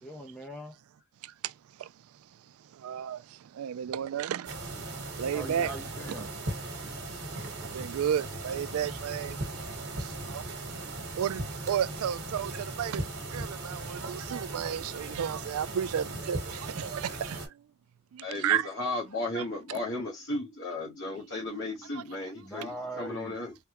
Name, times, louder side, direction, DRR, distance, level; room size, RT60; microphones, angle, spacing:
voice 1, 0.0-0.7 3.9-4.0 5.3-6.3 22.4-23.3, right 1 dB, 5° left, 0.5 m, -41 dB
voice 2, 1.2-1.5 1.8-1.9 2.7-4.6 5.2-5.7 6.2-6.3 7.6-13.1 13.3-17.6 18.1-18.7 19.4-19.5, right 9 dB, 65° right, 0.3 m, -33 dB
sound 1, 4.4-17.5, right 2 dB, 50° right, 1.3 m, -38 dB
voice 3, 18.2-23.6, left 2 dB, 55° left, 1.0 m, -35 dB
3.4 x 2.2 x 2.8 m
head